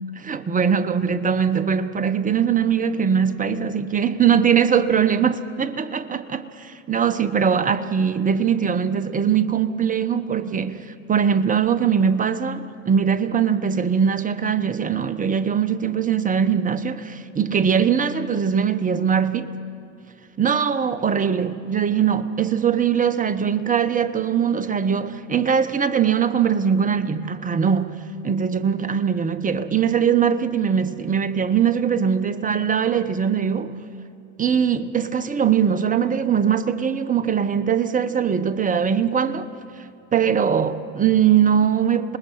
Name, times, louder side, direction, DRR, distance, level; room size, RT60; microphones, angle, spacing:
voice 1, 0.1-19.5 20.4-33.8 34.4-39.5 40.1-42.2, right 7 dB, 20° right, 1.0 m, -21 dB
27.0 x 20.5 x 5.8 m
hypercardioid pair, 95°, 38 cm